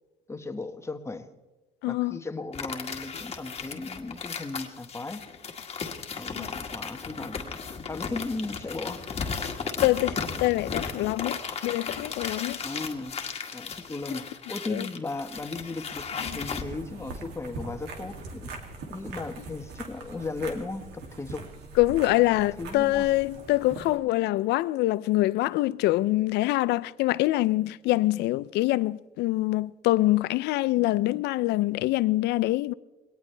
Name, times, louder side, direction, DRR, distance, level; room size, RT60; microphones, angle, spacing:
voice 1, 0.3-1.3 1.9-5.2 6.2-7.5 7.9-9.1 12.6-13.2 13.5-18.5 18.9-21.4 22.4-23.1, left 3 dB, 15° left, 1.3 m, -36 dB
voice 2, 1.8-2.2 6.4-6.5 9.8-12.6 14.7-14.9 16.2-16.4 21.8-32.7, left 17 dB, 80° left, 0.5 m, -25 dB
sound 1, 2.5-16.6, left 5 dB, 35° left, 1.8 m, -35 dB
sound 2, 16.2-24.0, right 3 dB, 80° right, 2.5 m, -42 dB
21.5 x 18.0 x 3.4 m
cardioid pair, 110°, 17 cm